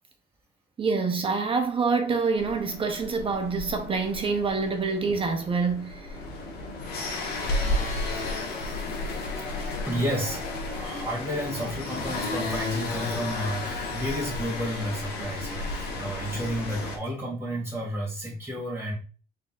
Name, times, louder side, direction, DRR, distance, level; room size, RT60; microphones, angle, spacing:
voice 1, 0.8-6.2, right 4 dB, 30° right, 0.7 m, -26 dB
sound 1, 2.4-17.0, left 2 dB, 70° left, 1.2 m, -33 dB
voice 2, 7.9-8.5 9.4-9.5 9.9-10.4 10.7-18.9, equal, 10° right, 2.0 m, -32 dB
4.0 x 4.0 x 2.4 m
cardioid pair, 110°, 17 cm